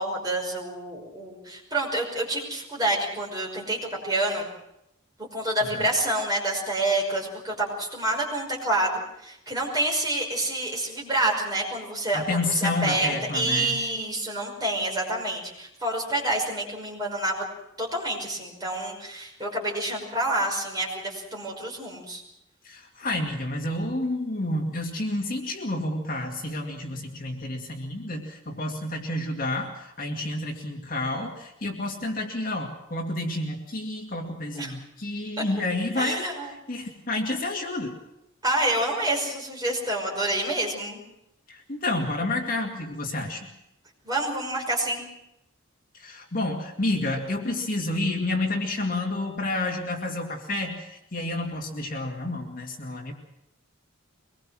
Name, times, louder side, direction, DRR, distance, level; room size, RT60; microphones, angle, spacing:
voice 1, 0.0-3.8 4.0-4.5 5.3-17.4 17.8-22.2 34.6-34.7 35.4-35.5 36.0-36.5 38.4-41.0 44.0-45.1, right 1 dB, 20° right, -2 dB, 5.6 m, -28 dB
voice 2, 12.1-13.8 22.6-36.3 36.7-37.9 41.5-43.5 45.9-53.1, left 2 dB, 40° left, 1 dB, 2.3 m, -30 dB
24.0 x 21.0 x 6.3 m, 0.84 s
head